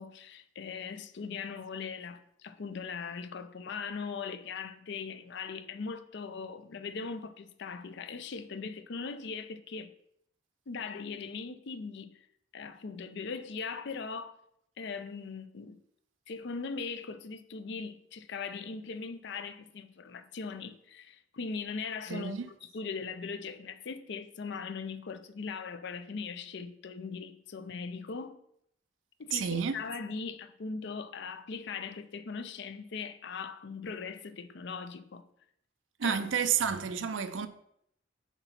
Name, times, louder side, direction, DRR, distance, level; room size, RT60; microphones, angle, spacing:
voice 1, 0.0-9.9 10.7-12.2 12.5-14.3 14.8-15.8 16.3-28.4 29.2-35.3 36.0-36.2, left 5 dB, 65° left, 0.5 m, -40 dB
voice 2, 22.1-22.5 29.3-29.8 36.0-37.5, right 7 dB, 90° right, 0.6 m, -30 dB
5.8 x 4.0 x 5.7 m
head